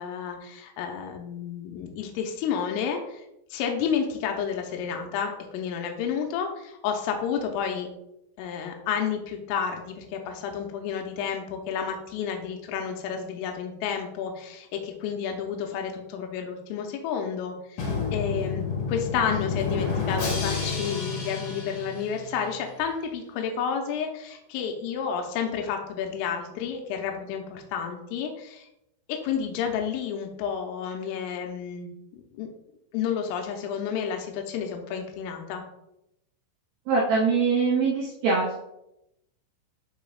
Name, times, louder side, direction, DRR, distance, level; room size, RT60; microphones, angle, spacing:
voice 1, 0.0-3.3 3.5-7.9 8.4-28.7 29.1-32.5 32.9-35.6, left 7 dB, 90° left, 3 dB, 3.3 m, -31 dB
Drum, 17.8-22.6, left 5 dB, 65° left, 2.1 m, -30 dB
voice 2, 36.9-38.6, right 4 dB, 75° right, -6 dB, 2.2 m, -23 dB
10.0 x 4.8 x 2.3 m, 0.83 s
omnidirectional pair, 5.8 m